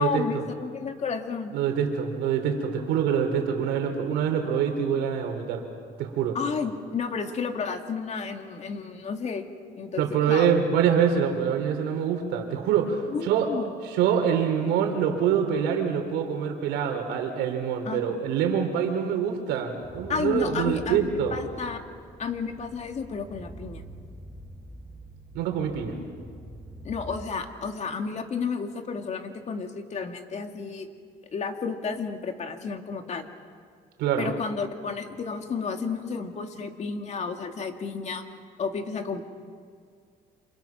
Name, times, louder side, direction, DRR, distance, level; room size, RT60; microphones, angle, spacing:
voice 1, 0.0-1.5 6.3-9.5 9.8-10.0 10.3-10.5 13.1-13.7 17.9-18.2 20.1-21.8 22.2-23.8 26.8-30.9 31.3-33.3 34.2-38.2 38.6-39.3, left 5 dB, 40° left, 5 dB, 2.3 m, -32 dB
voice 2, 1.5-5.6 6.0-6.4 10.0-13.5 13.9-21.3 25.3-25.9 34.0-34.3, right 8 dB, 90° right, 4 dB, 3.6 m, -25 dB
sound 1, 19.8-27.3, right 1 dB, ahead, 7.0 m, -44 dB
28.5 x 26.5 x 6.0 m, 2.2 s
cardioid pair, 110°, 17 cm